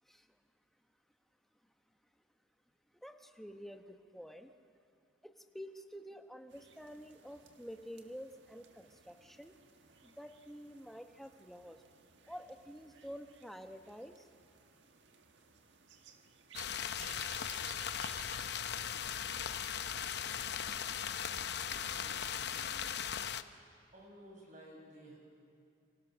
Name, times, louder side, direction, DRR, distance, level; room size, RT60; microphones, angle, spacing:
voice 1, 3.0-4.5 5.2-9.5 10.0-11.8 12.3-14.3, equal, ahead, 6 dB, 1.0 m, -49 dB
sound 1, 6.5-22.1, right 6 dB, 70° right, 1.6 m, -59 dB
sound 2, 16.5-23.4, left 8 dB, 60° left, 0.7 m, -38 dB
voice 2, 22.0-23.5 23.9-25.2, equal, 40° right, -1 dB, 6.7 m, -56 dB
29.0 x 25.0 x 6.3 m, 2.4 s
head